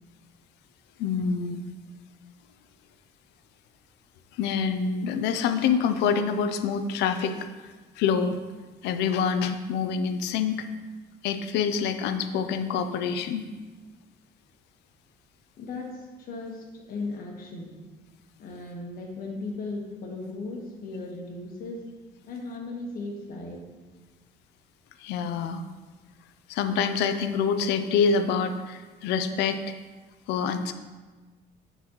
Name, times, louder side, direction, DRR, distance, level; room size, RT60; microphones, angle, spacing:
voice 1, 1.0-1.6 4.3-7.5 8.0-8.4 8.8-10.7 11.2-13.5 25.0-25.6 26.5-29.7 30.3-30.7, left 6 dB, 85° left, 9 dB, 0.5 m, -26 dB
voice 2, 15.6-17.7 18.4-21.8 22.2-23.6, left 3 dB, 60° left, 0 dB, 1.3 m, -37 dB
9.4 x 4.1 x 3.0 m, 1.3 s
cardioid pair, 110°, 17 cm